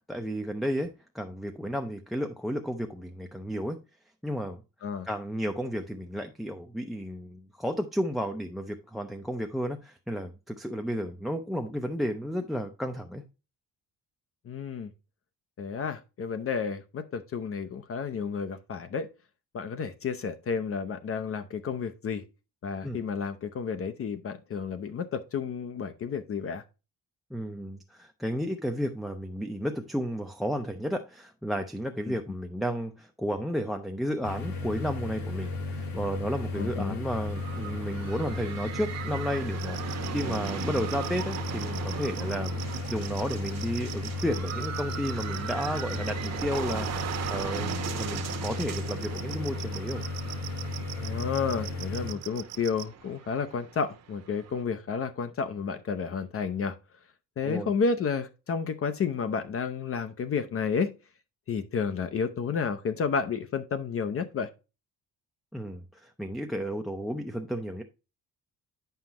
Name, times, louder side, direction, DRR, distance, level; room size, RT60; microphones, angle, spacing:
voice 1, 0.0-3.8 4.2-4.6 5.0-13.2 22.8-23.0 27.3-50.0 57.5-57.7 65.5-67.8, equal, ahead, 0.5 m, -33 dB
voice 2, 14.5-14.9 15.6-19.1 19.5-22.2 22.6-26.6 32.1-32.2 36.6-37.0 50.9-56.8 57.4-60.9 61.5-64.5, left 6 dB, 40° left, 0.6 m, -31 dB
sound 1, 34.2-52.1, left 2 dB, 80° left, 2.5 m, -35 dB
sound 2, 37.0-54.6, right 8 dB, 50° right, 1.0 m, -39 dB
sound 3, 39.6-52.8, right 15 dB, 70° right, 0.7 m, -41 dB
8.7 x 5.6 x 2.9 m
cardioid pair, 145°, 35 cm